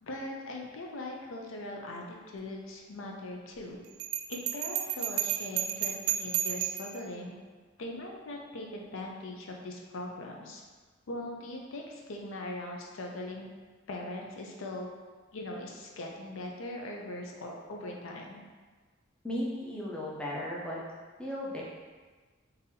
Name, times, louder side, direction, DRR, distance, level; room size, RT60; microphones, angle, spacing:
voice 1, 0.0-3.8 4.3-7.4 7.8-10.6 11.1-13.5 13.9-14.9 15.3-18.4, left 1 dB, 70° left, 0 dB, 0.5 m, -40 dB
Bell, 4.0-7.0, right 11 dB, 85° right, 0.3 m, -32 dB
voice 2, 19.2-20.8 21.2-21.6, left 1 dB, 5° left, -5 dB, 0.5 m, -35 dB
3.9 x 2.6 x 2.7 m, 1.4 s
head